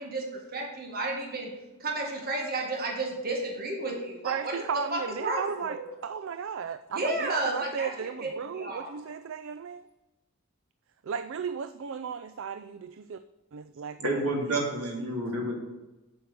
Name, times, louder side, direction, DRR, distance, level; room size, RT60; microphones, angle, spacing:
voice 1, 0.0-1.5 1.8-4.6 4.9-5.9 6.9-8.9, right 2 dB, 40° right, 1 dB, 1.7 m, -32 dB
voice 2, 4.2-9.8 11.0-13.2 13.5-14.7 15.0-15.2, right 6 dB, 60° right, 11 dB, 0.3 m, -35 dB
voice 3, 14.0-15.6, right 1 dB, 85° right, 0 dB, 2.5 m, -29 dB
7.7 x 6.3 x 6.8 m, 1.0 s
head